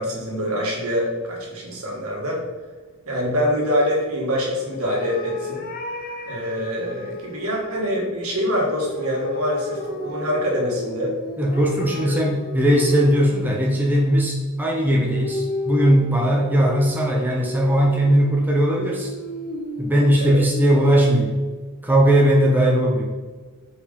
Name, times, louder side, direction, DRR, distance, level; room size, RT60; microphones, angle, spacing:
voice 1, 0.0-2.4 3.1-5.6 6.3-11.1 20.2-20.4, equal, 80° right, -2 dB, 1.9 m, -25 dB
sound 1, 4.8-7.8 8.8-13.6 15.0-21.1, left 1 dB, 40° left, 0.8 m, -33 dB
voice 2, 11.4-19.1 19.8-21.3 21.8-23.1, equal, 10° right, -2 dB, 0.8 m, -19 dB
4.9 x 4.8 x 5.3 m, 1.4 s
head